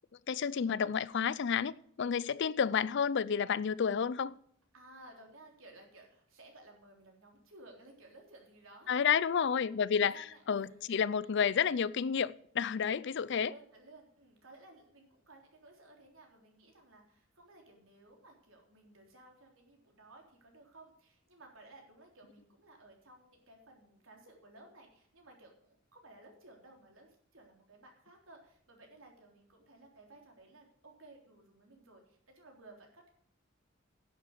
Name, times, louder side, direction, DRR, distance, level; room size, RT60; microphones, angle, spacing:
voice 1, 0.3-1.7 2.0-4.3 8.9-13.5, left 7 dB, 60° left, 0.5 m, -30 dB
voice 2, 4.7-9.0 9.4-11.0 13.3-33.1, right 2 dB, 85° right, 3.6 m, -57 dB
11.0 x 7.6 x 6.7 m
head